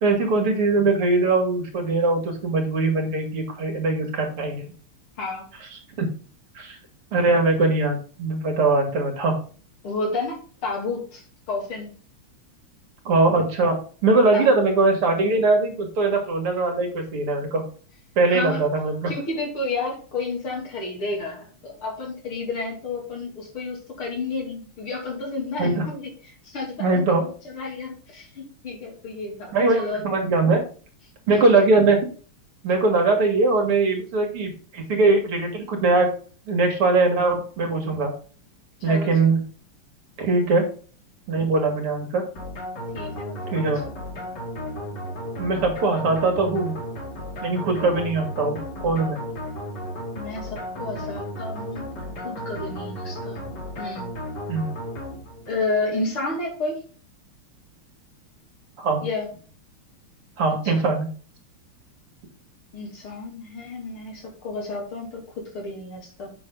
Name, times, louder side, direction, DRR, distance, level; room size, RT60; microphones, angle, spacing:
voice 1, 0.0-4.7 6.0-6.1 6.5-6.8 7.1-9.4 13.0-17.6 18.2-19.1 25.6-25.9 26.8-27.2 29.5-30.6 31.3-32.0 32.6-36.1 36.5-38.1 38.8-39.4 40.2-40.7 41.3-42.2 43.5-43.8 45.4-46.8 47.4-49.2 54.5-54.7 58.8-59.1 60.4-61.1, right 3 dB, 80° right, 2 dB, 3.1 m, -21 dB
voice 2, 9.8-11.9 14.3-14.6 18.3-18.6 19.1-30.1 31.3-31.6 38.9-39.3 42.9-43.6 50.2-53.4 53.8-54.1 55.5-56.8 59.0-59.3 60.5-60.6 62.7-66.3, left 3 dB, 70° left, -1 dB, 3.6 m, -31 dB
sound 1, 42.4-55.7, equal, 50° left, 3.3 m, -34 dB
8.2 x 6.3 x 3.9 m, 0.39 s
omnidirectional pair, 2.4 m